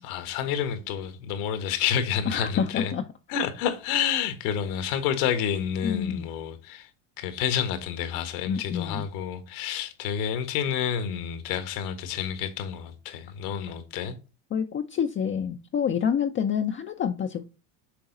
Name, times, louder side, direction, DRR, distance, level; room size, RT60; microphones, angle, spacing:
voice 1, 0.0-2.9 3.3-6.9 7.2-14.2, left 8 dB, 75° left, 1.6 m, -29 dB
voice 2, 2.3-3.0 5.8-6.3 8.5-9.0 14.5-17.4, left 7 dB, 30° left, 0.6 m, -27 dB
6.7 x 3.9 x 3.9 m
supercardioid pair, 105°, 45 cm